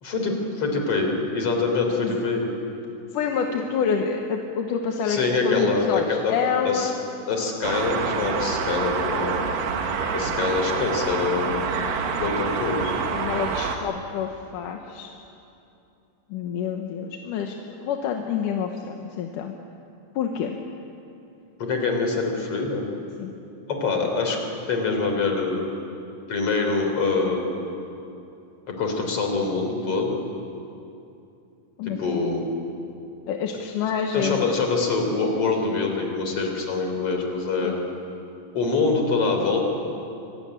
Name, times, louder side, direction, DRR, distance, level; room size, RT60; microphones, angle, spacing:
voice 1, 0.0-2.5 5.1-6.3 6.6-6.9 7.3-9.4 10.1-11.6 12.2-12.8 21.6-22.9 23.7-24.4 24.7-25.7 26.3-27.7 28.7-30.2 32.0-32.5 34.1-37.8 38.5-39.6, left 4 dB, 45° left, 3 dB, 4.3 m, -25 dB
voice 2, 3.1-7.0 8.5-8.8 11.5-11.9 12.3-12.6 12.8-15.1 16.3-17.6 17.8-19.5 20.2-20.6 23.2-23.3 31.8-32.2 33.3-34.7 37.6-37.8, left 7 dB, 80° left, 3 dB, 2.7 m, -28 dB
sound 1, 7.6-13.8, right 6 dB, 80° right, 3.2 m, -27 dB
25.5 x 17.5 x 10.0 m, 2.7 s
omnidirectional pair, 3.7 m